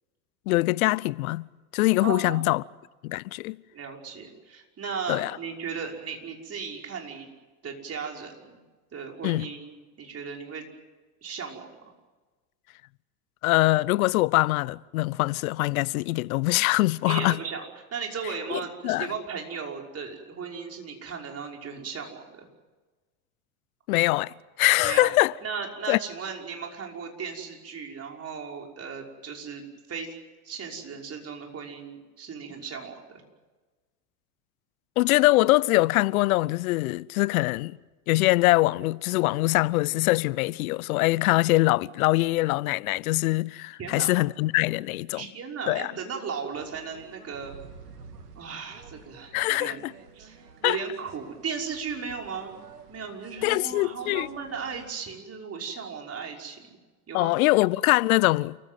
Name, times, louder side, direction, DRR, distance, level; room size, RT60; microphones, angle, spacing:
voice 1, 0.5-2.6 3.0-3.6 5.1-5.3 9.2-9.5 13.4-17.4 18.5-19.1 23.9-25.3 25.9-26.0 35.0-37.8 38.1-45.3 45.7-45.9 49.3-49.9 50.6-50.8 53.4-54.3 57.1-58.6, left 19 dB, 65° left, 0.8 m, -23 dB
voice 2, 2.0-2.5 3.7-7.3 7.6-8.6 8.9-10.7 11.2-11.7 17.1-17.6 17.9-22.5 24.8-25.1 25.4-29.6 29.9-30.1 30.4-33.2 43.8-44.1 45.1-47.5 48.3-49.8 50.1-52.6 52.9-56.7 57.1-57.4, right 6 dB, 30° right, 5.8 m, -36 dB
sound 1, 46.5-54.9, right 5 dB, 85° right, 2.8 m, -50 dB
29.0 x 15.5 x 9.2 m
hypercardioid pair, 85°, 46 cm